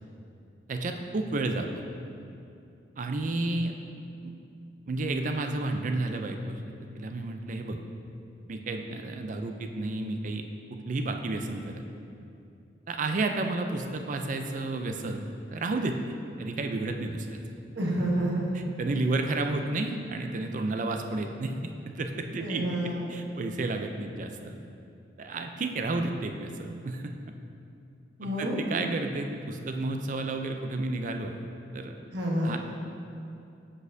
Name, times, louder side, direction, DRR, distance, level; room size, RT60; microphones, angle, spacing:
voice 1, 0.7-1.7 3.0-3.7 4.9-6.6 7.0-7.8 8.5-10.4 10.7-11.8 12.9-16.0 16.4-17.4 18.5-24.5 25.2-27.2 28.2-31.5 31.7-31.9 32.4-32.6, right 2 dB, 45° right, 5 dB, 0.4 m, -31 dB
voice 2, 17.7-18.6 22.4-23.2 28.2-28.6 32.1-32.5, right 1 dB, 65° right, -3 dB, 1.1 m, -29 dB
7.3 x 6.3 x 2.7 m, 2.6 s
head